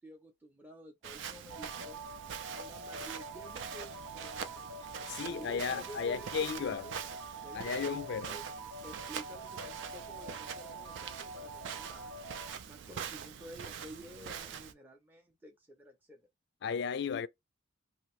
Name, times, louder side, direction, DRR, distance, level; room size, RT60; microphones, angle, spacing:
voice 1, 0.0-2.1 2.5-4.8 5.2-7.0 7.4-8.5 8.8-12.2 12.7-16.3, equal, 10° right, 0.5 m, -51 dB
Walk footsteps, 1.0-14.7, right 7 dB, 60° right, 0.4 m, -44 dB
sound 1, 1.5-12.5, right 3 dB, 85° right, 0.8 m, -46 dB
voice 2, 5.1-6.9 7.5-8.4 16.6-17.3, left 6 dB, 55° left, 0.3 m, -34 dB
2.8 x 2.6 x 3.1 m
head